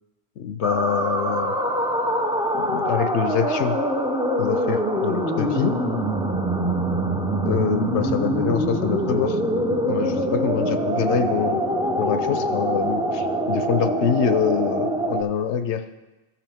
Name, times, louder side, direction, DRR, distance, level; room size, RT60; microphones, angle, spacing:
voice 1, 0.4-1.5 2.5-3.8 4.4-5.7 7.5-9.4 9.9-11.6 12.0-15.8, left 8 dB, 70° left, 9 dB, 0.8 m, -25 dB
sound 1, 0.6-15.2, right 1 dB, 10° right, 0.3 m, -24 dB
15.5 x 5.8 x 3.5 m, 1.1 s
omnidirectional pair, 1.3 m